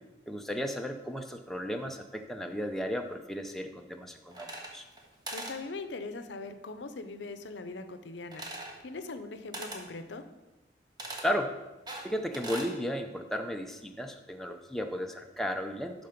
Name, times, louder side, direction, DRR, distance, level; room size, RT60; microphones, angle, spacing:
voice 1, 0.3-4.9 11.2-11.5 12.0-16.1, equal, ahead, 4 dB, 0.5 m, -34 dB
sound 1, 4.3-5.0 5.3-5.6 8.3-8.8 9.5-9.9 11.0-11.3 11.9-12.7, right 1 dB, 20° right, 1.1 m, -40 dB
voice 2, 5.3-8.4 8.8-10.2, left 3 dB, 75° left, 10 dB, 0.6 m, -41 dB
11.5 x 3.9 x 5.1 m, 1.1 s
head